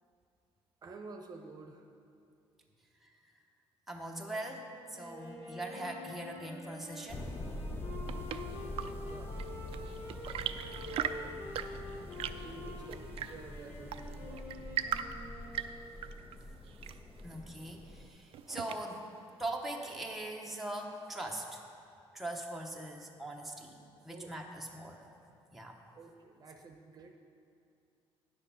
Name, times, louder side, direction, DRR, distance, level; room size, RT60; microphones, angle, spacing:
voice 1, 0.8-1.9 9.1-9.4 10.8-11.4 12.4-14.8 24.1-24.4 25.9-27.1, right 3 dB, 40° right, 3 dB, 0.8 m, -50 dB
voice 2, 3.9-7.5 17.2-19.1 19.4-21.6 22.1-23.8 24.0-25.0 25.5-25.8, right 1 dB, ahead, -1 dB, 0.9 m, -41 dB
Wind instrument woodwind instrument, 4.9-16.0, left 2 dB, 85° left, 2.6 m, -48 dB
sound 1, 7.1-18.1, left 1 dB, 25° left, 0.6 m, -44 dB
Chirp tweet / Engine / Tap, 7.6-19.2, right 9 dB, 65° right, 0.4 m, -41 dB
10.0 x 6.5 x 5.6 m, 2.6 s
cardioid pair, 135°, 10 cm